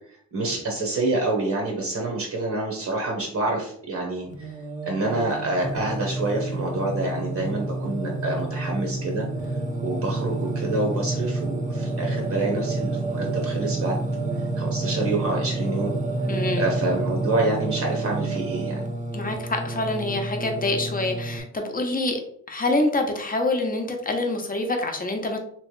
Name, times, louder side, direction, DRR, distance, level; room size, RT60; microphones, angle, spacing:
voice 1, 0.1-4.6 4.8-9.3 9.8-14.0 14.3-15.9 16.6-18.8, right 2 dB, 60° right, 0 dB, 0.9 m, -27 dB
Singing, 4.3-21.4, right 2 dB, 25° right, 0.6 m, -29 dB
voice 2, 16.3-16.7 19.1-22.2 22.5-25.4, left 2 dB, 25° left, 3 dB, 0.7 m, -26 dB
3.1 x 3.0 x 3.1 m, 0.67 s
cardioid pair, 100°, 32 cm